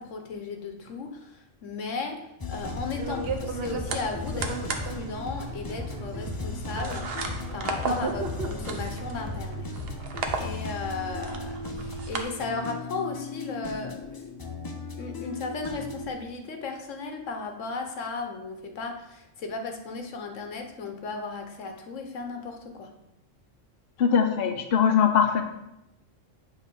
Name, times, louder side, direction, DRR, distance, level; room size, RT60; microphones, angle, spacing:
voice 1, 0.0-2.2 2.5-9.7 10.4-14.4 14.9-22.9, left 4 dB, 75° left, 4 dB, 1.2 m, -35 dB
sound 1, 2.4-16.1, left 4 dB, 25° left, 0.5 m, -37 dB
sound 2, 2.5-12.2, right 5 dB, 55° right, 0.9 m, -35 dB
voice 2, 24.0-25.4, left 7 dB, 55° left, 4 dB, 0.8 m, -21 dB
8.4 x 3.4 x 5.3 m, 0.89 s
omnidirectional pair, 1.3 m